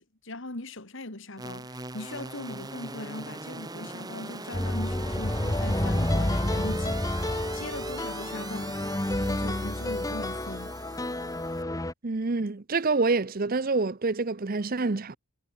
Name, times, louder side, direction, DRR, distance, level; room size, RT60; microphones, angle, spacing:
voice 1, 0.0-7.1 7.5-8.8 9.2-10.7, left 2 dB, 55° left, 2.3 m, -40 dB
sound 1, 1.4-11.6, right 3 dB, 15° right, 1.9 m, -41 dB
sound 2, 4.5-11.9, left 1 dB, 15° left, 1.1 m, -29 dB
voice 2, 12.0-15.2, right 3 dB, 40° right, 0.7 m, -27 dB
head